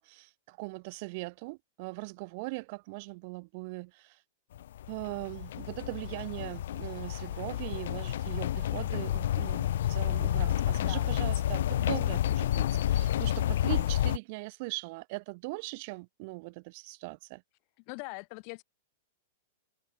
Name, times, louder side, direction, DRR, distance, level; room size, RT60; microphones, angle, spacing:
voice 1, 0.0-4.2 4.9-17.4, right 27 dB, 45° right, 5.0 m, -40 dB
sound 1, 4.6-14.2, left 12 dB, 70° left, 0.7 m, -30 dB
voice 2, 10.8-11.1 17.9-18.6, left 40 dB or more, 40° left, 4.1 m, -41 dB
supercardioid pair, 155°, 0 cm